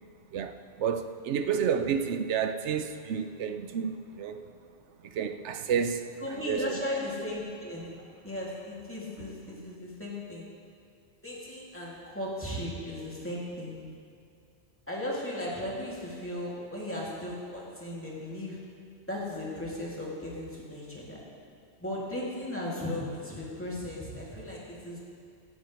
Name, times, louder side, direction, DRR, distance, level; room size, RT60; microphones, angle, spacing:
voice 1, 0.3-4.4 5.0-6.6, right 7 dB, 75° right, 9 dB, 1.0 m, -30 dB
voice 2, 6.2-7.9 8.2-10.5 11.2-13.8 14.9-18.6 19.1-21.2 21.8-25.0, left 1 dB, 10° left, -6 dB, 2.7 m, -36 dB
18.0 x 12.0 x 3.4 m, 2.4 s
omnidirectional pair, 1.2 m